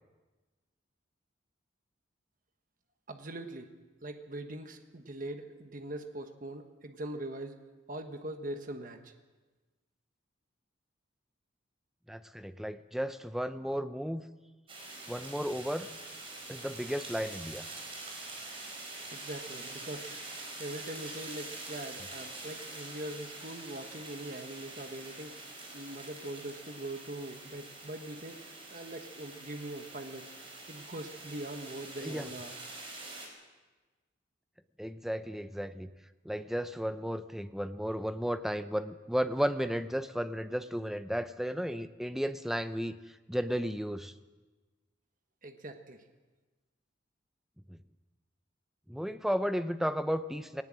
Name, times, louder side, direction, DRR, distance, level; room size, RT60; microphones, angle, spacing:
voice 1, 3.1-3.7 4.0-7.6 7.9-9.1 19.1-30.2 30.7-32.6 45.4-46.0, right 1 dB, 45° right, 6 dB, 1.3 m, -42 dB
voice 2, 12.1-14.2 15.1-15.9 16.5-17.6 32.0-32.3 34.8-35.9 36.2-43.0 43.3-44.1 47.7-47.8 48.9-50.6, equal, ahead, 10 dB, 0.7 m, -34 dB
sound 1, 14.7-33.3, right 2 dB, 30° right, 4.5 m, -45 dB
18.5 x 18.5 x 7.6 m, 1.2 s
head